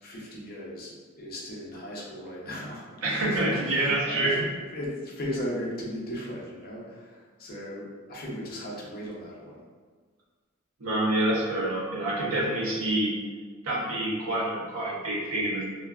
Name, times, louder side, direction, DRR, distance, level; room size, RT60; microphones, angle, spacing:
voice 1, 0.0-9.6, equal, 45° left, -4 dB, 0.6 m, -37 dB
voice 2, 3.0-4.4 10.8-13.1 13.6-15.6, right 1 dB, 80° right, -6 dB, 0.8 m, -27 dB
2.4 x 2.2 x 2.3 m, 1.5 s
head